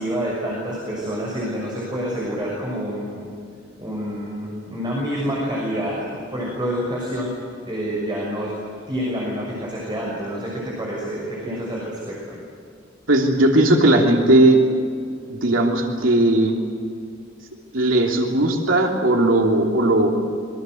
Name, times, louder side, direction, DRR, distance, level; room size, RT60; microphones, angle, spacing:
voice 1, 0.0-3.2 3.8-7.3 7.6-8.5 8.9-12.2, equal, 25° right, -4 dB, 6.3 m, -27 dB
voice 2, 13.1-14.6 15.3-16.6 17.7-20.2, right 1 dB, 75° right, 1 dB, 3.2 m, -17 dB
26.5 x 23.5 x 7.9 m, 2.4 s
head